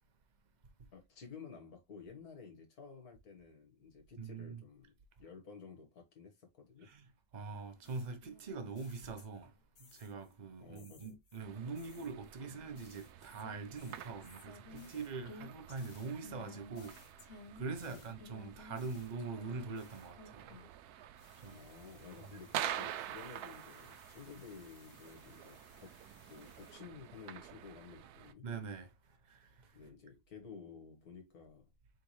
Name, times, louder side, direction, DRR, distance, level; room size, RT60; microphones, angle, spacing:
voice 1, 0.9-4.9 5.2-6.9 10.6-11.2 17.9-18.2 21.4-26.0 26.3-28.5 29.7-31.7, left 5 dB, 80° left, 1.8 m, -53 dB
voice 2, 4.2-4.6 6.8-7.1 7.3-9.5 9.9-17.0 17.5-20.5 21.4-21.6 28.4-28.9 29.3-29.5, right 4 dB, 35° right, 0.8 m, -43 dB
sound 1, 7.8-10.3 10.8-20.9 21.2-26.7, left 4 dB, 50° left, 1.2 m, -58 dB
sound 2, 11.4-28.3, right 11 dB, 85° right, 1.1 m, -48 dB
4.1 x 3.7 x 3.1 m
omnidirectional pair, 1.6 m